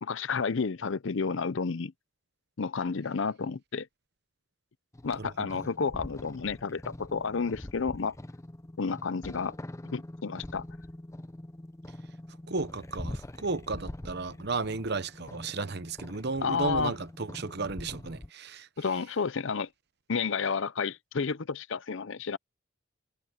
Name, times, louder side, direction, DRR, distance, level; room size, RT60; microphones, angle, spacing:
voice 1, 0.0-1.9 2.6-3.9 5.0-8.2 8.8-9.6 9.9-10.6 16.4-17.0 18.8-19.7 20.1-22.4, left 5 dB, 60° left, 0.6 m, -31 dB
sound 1, 4.9-18.3, left 1 dB, 15° left, 0.5 m, -44 dB
voice 2, 12.5-18.7, right 4 dB, 50° right, 0.9 m, -34 dB
head